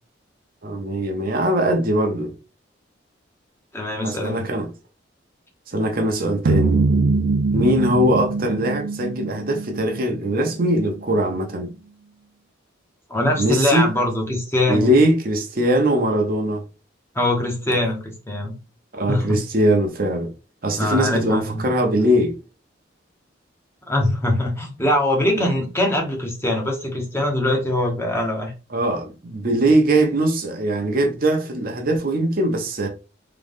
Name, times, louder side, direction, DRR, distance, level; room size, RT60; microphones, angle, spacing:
voice 1, 0.6-2.3 4.0-4.7 5.7-6.8 7.5-11.7 13.4-13.9 14.7-16.6 18.9-20.3 20.6-22.4 28.7-32.9, right 1 dB, 50° right, 0.8 m, -21 dB
voice 2, 3.7-4.4 13.1-14.9 17.1-18.5 19.1-19.4 20.8-21.6 23.9-28.5, left 1 dB, 15° left, 0.9 m, -22 dB
sound 1, 6.5-10.8, right 4 dB, 65° right, 0.4 m, -23 dB
3.8 x 3.0 x 3.5 m
head